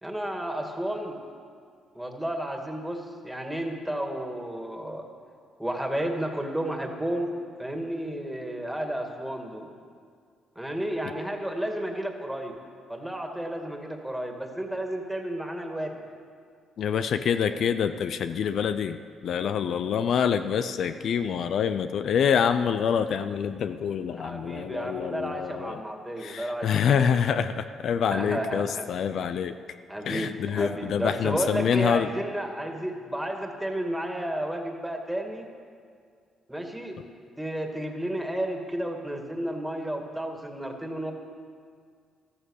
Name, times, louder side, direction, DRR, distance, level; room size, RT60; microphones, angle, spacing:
voice 1, 0.0-1.2 1.9-5.0 5.6-7.3 7.6-9.7 10.6-12.5 12.9-15.9 24.2-27.1 28.1-28.9 29.9-35.5 36.5-37.0 37.4-41.1, right 1 dB, 5° right, 3 dB, 2.1 m, -32 dB
voice 2, 16.8-19.0 19.2-25.8 26.2-29.6 30.1-32.1, left 7 dB, 65° left, 10 dB, 0.5 m, -26 dB
14.5 x 13.0 x 6.5 m, 2.1 s
cardioid pair, 90°, 0 cm